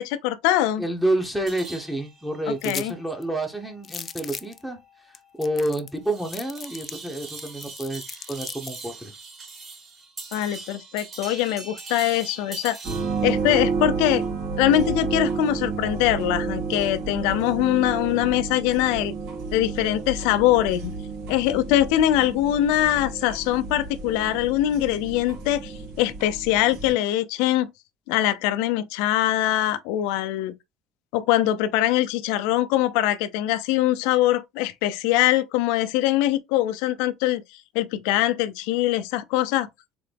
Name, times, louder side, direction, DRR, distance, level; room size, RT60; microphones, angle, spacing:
voice 1, 0.0-0.8 2.5-2.9 10.3-12.8 13.2-14.2 14.6-19.1 19.5-20.9 21.3-27.7 28.1-30.5 31.1-37.4 37.7-39.7, left 13 dB, 85° left, 0.5 m, -23 dB
voice 2, 0.8-8.0 8.3-9.1, right 1 dB, 5° right, 1.0 m, -29 dB
sound 1, 1.5-13.3, right 3 dB, 30° right, 2.3 m, -42 dB
sound 2, 2.6-2.9 3.2-3.3 3.8-4.6 5.1-5.2 5.4-6.0 6.3-8.8, left 6 dB, 35° left, 0.5 m, -37 dB
sound 3, 12.8-26.9, right 4 dB, 80° right, 2.4 m, -31 dB
3.9 x 3.8 x 3.4 m
cardioid pair, 120°, 0 cm